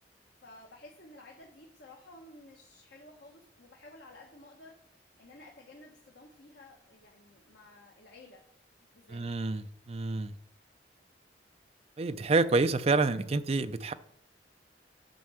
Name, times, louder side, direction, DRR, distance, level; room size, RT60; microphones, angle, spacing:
voice 1, 0.4-8.4 8.8-9.2, left 2 dB, 75° left, -1 dB, 1.4 m, -53 dB
voice 2, 9.1-10.3 12.0-13.9, right 3 dB, 35° right, 11 dB, 0.5 m, -28 dB
9.2 x 5.5 x 6.3 m, 0.71 s
head